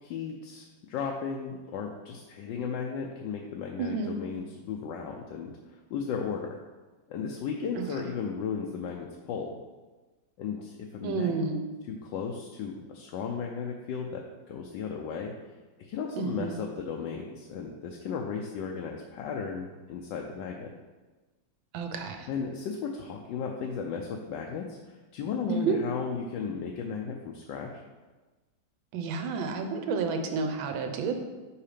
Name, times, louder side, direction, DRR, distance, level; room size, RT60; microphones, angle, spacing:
voice 1, 0.0-6.5 7.1-9.6 10.4-11.4 11.9-15.3 15.8-20.7 22.3-27.8, left 6 dB, 75° left, 1 dB, 1.3 m, -35 dB
voice 2, 3.8-4.2 7.8-7.9 11.0-11.6 16.1-16.6 21.7-22.3 25.5-25.8 28.9-31.1, right 4 dB, 85° right, 5 dB, 1.5 m, -30 dB
5.6 x 4.9 x 5.0 m, 1.2 s
omnidirectional pair, 2.1 m